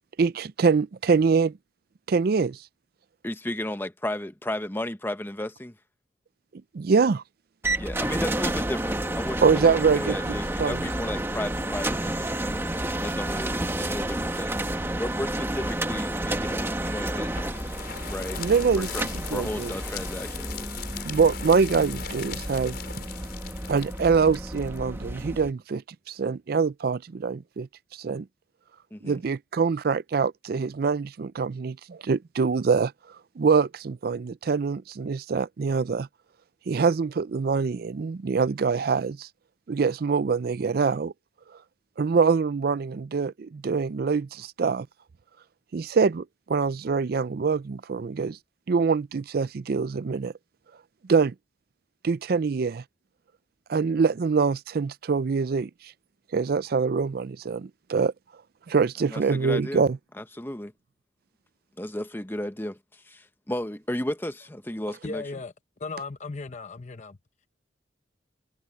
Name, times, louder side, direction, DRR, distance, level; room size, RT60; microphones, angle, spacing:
voice 1, 0.2-1.6 2.1-2.6 6.7-7.2 9.4-10.8 18.4-19.7 21.0-22.8 23.7-25.8 26.1-27.7 28.0-28.3 29.0-32.9 33.4-36.1 36.7-39.3 39.7-41.1 42.0-44.9 45.7-48.4 48.7-50.3 51.1-51.3 52.0-52.8 53.7-55.7 56.3-58.1 58.7-60.0, right 5 dB, 55° right, 0.4 m, -24 dB
voice 2, 3.2-5.7 7.8-12.3 13.0-14.6 15.0-17.7 18.1-18.4 18.8-19.0 19.3-20.5 28.9-29.2 59.1-59.8 60.2-60.7 61.8-65.2, left 1 dB, 10° left, 1.0 m, -34 dB
sound 1, 7.6-25.5, right 1 dB, 15° right, 1.4 m, -30 dB
sound 2, 16.4-25.2, left 8 dB, 55° left, 5.4 m, -40 dB
voice 3, 65.0-65.5 65.8-67.2, left 3 dB, 40° left, 0.7 m, -36 dB
head